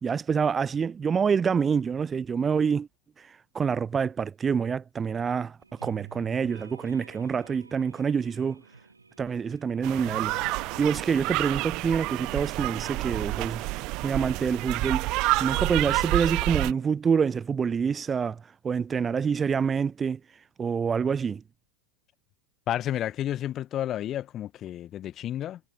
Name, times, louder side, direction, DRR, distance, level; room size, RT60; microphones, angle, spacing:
voice 1, 0.0-2.9 3.5-5.6 5.8-8.6 9.2-13.7 14.0-15.1 15.4-18.4 18.6-20.2 20.6-21.4, right 6 dB, 20° right, 0.4 m, -26 dB
sound 1, 5.6-16.9, right 3 dB, 80° right, 4.9 m, -51 dB
sound 2, 9.8-16.7, right 22 dB, 40° right, 1.0 m, -29 dB
voice 2, 22.7-25.6, left 12 dB, 30° left, 1.5 m, -31 dB
figure-of-eight pair, 90°, 0 cm